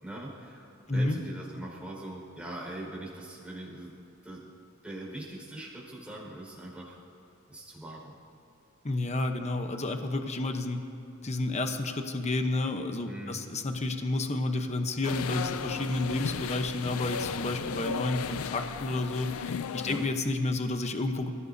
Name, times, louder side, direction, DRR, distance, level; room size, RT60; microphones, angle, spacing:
voice 1, 0.0-3.9 4.2-4.4 4.8-7.0 7.5-8.1 13.0-13.4 19.8-20.0, right 1 dB, 5° right, -4 dB, 5.0 m, -42 dB
voice 2, 8.8-10.8 11.2-21.3, left 2 dB, 30° left, 5 dB, 0.9 m, -30 dB
sound 1, 15.0-20.1, left 6 dB, 80° left, 0.4 m, -35 dB
29.0 x 16.5 x 2.8 m, 2.7 s
head